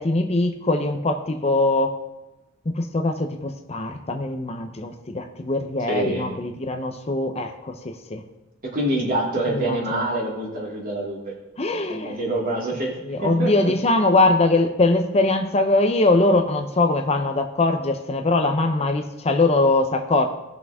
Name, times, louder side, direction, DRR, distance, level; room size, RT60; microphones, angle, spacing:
voice 1, 0.0-1.9 2.7-8.2 9.5-10.0 11.6-12.3 13.0-20.3, left 2 dB, 30° left, 5 dB, 0.7 m, -22 dB
voice 2, 5.9-6.4 8.7-11.3 11.9-12.9 13.2-13.7, right 1 dB, 45° right, -3 dB, 2.9 m, -26 dB
18.0 x 6.1 x 3.6 m, 1.0 s
head